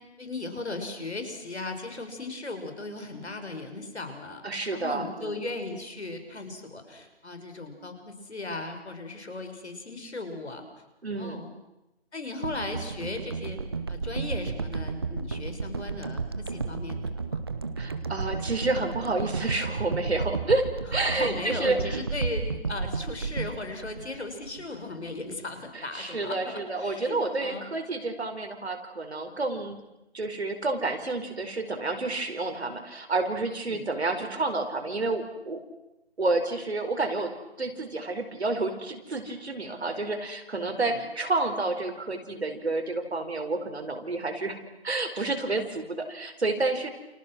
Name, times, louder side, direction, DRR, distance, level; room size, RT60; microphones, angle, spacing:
voice 1, 0.2-10.6 11.2-11.5 12.1-13.6 13.9-17.4 21.0-27.7 29.6-29.8 33.6-33.9 40.9-41.0, left 2 dB, 80° left, 6 dB, 6.3 m, -37 dB
voice 2, 4.4-5.4 11.0-11.4 17.8-22.0 25.7-29.8 30.1-35.6 36.2-44.6 44.8-46.9, right 2 dB, 70° right, 5 dB, 5.0 m, -29 dB
sound 1, 12.4-24.8 25.1-25.2, right 4 dB, 25° right, 1.0 m, -33 dB
29.5 x 29.5 x 6.3 m, 0.94 s
figure-of-eight pair, 170°, 33 cm